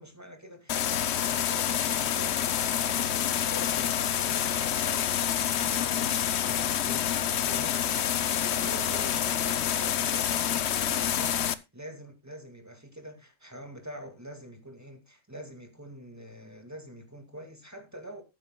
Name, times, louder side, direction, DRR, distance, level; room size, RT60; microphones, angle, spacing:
voice 1, 0.0-18.2, equal, 10° right, 2.1 m, -45 dB
sound 1, 0.7-11.5, left 9 dB, 60° left, 0.9 m, -27 dB
19.5 x 9.0 x 2.2 m
omnidirectional pair, 1.3 m